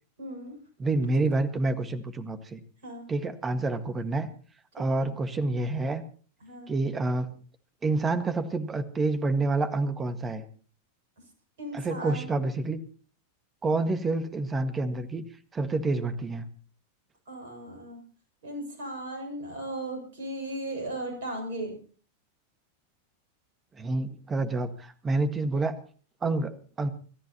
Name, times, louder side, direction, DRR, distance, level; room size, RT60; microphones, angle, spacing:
voice 1, 0.2-0.6 2.8-3.1 4.8-5.1 6.4-6.7 11.6-12.3 17.3-18.0 18.4-21.8, right 1 dB, 55° right, 3 dB, 7.1 m, -37 dB
voice 2, 0.8-2.6 3.1-4.3 4.7-6.0 6.7-7.3 7.8-10.4 11.7-12.8 13.6-15.2 15.5-16.4 23.8-25.8 26.2-26.9, right 2 dB, 20° right, 10 dB, 1.7 m, -28 dB
29.0 x 13.5 x 3.0 m, 0.42 s
figure-of-eight pair, 90°, 0 cm